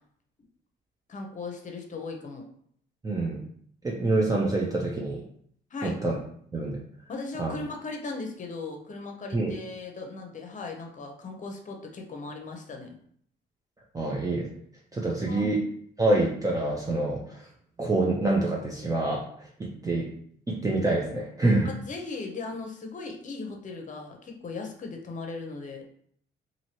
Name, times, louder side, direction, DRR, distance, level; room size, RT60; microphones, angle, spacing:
voice 1, 1.1-2.4 5.7-6.0 7.1-12.9 15.2-15.5 21.6-25.8, left 3 dB, 40° left, 2 dB, 0.7 m, -38 dB
voice 2, 3.0-3.4 3.8-5.2 5.8-6.1 6.5-6.8 7.4-7.5 9.3-9.5 13.9-14.5 14.9-15.6 16.0-17.4 17.8-19.2 19.6-20.1 20.5-21.7, right 2 dB, 15° right, -3 dB, 0.5 m, -26 dB
2.8 x 2.7 x 2.9 m, 0.63 s
cardioid pair, 90°, 20 cm